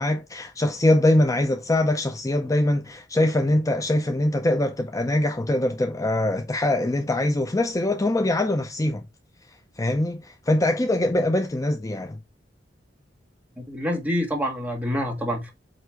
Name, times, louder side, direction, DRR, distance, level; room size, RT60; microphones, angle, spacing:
voice 1, 0.0-9.0 9.8-12.2, left 1 dB, 20° left, 0.5 m, -23 dB
voice 2, 13.7-15.5, equal, 10° right, 1.6 m, -27 dB
8.0 x 2.9 x 4.5 m
head